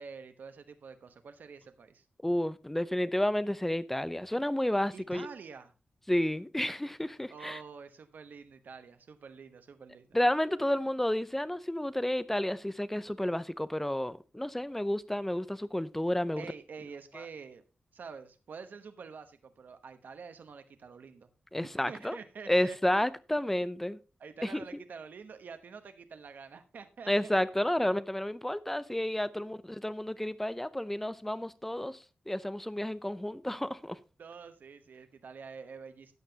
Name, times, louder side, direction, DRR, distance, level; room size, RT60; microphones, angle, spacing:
voice 1, 0.0-2.0 4.9-5.7 7.3-10.1 16.4-17.6 17.9-21.3 21.6-23.1 24.2-27.4 34.2-36.1, right 5 dB, 75° right, 1.0 m, -47 dB
voice 2, 2.2-5.3 6.1-7.6 10.1-16.5 17.1-17.3 21.5-22.2 22.5-24.0 24.4-24.6 27.1-34.0, left 1 dB, 10° left, 0.7 m, -31 dB
13.5 x 9.1 x 2.9 m
wide cardioid pair, 105°, 3 cm